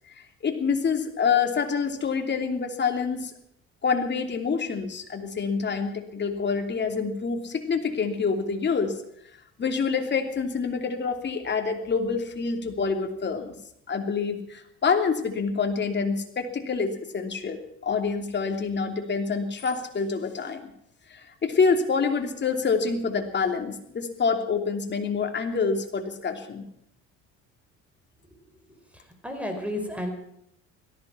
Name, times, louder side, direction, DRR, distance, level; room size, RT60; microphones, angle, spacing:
voice 1, 0.4-3.3 3.8-9.0 9.6-13.6 13.9-20.7 21.1-26.7, left 5 dB, 35° left, 5 dB, 3.0 m, -27 dB
voice 2, 28.9-30.1, left 1 dB, 5° right, 4 dB, 4.8 m, -32 dB
17.5 x 14.5 x 5.8 m, 0.74 s
cardioid pair, 95°, 30 cm